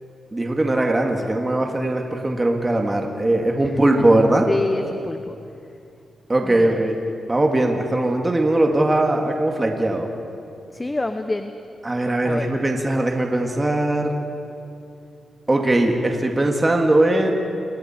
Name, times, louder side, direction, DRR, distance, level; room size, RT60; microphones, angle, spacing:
voice 1, 0.3-4.4 6.3-7.0 7.3-10.1 11.8-14.2 15.5-17.3, right 1 dB, 20° right, 2 dB, 2.0 m, -20 dB
voice 2, 3.7-4.0 4.5-5.4 6.4-6.8 10.7-11.5 12.2-12.5, left 2 dB, 20° left, 8 dB, 0.9 m, -26 dB
28.5 x 22.5 x 4.4 m, 2.6 s
cardioid pair, 90°, 0 cm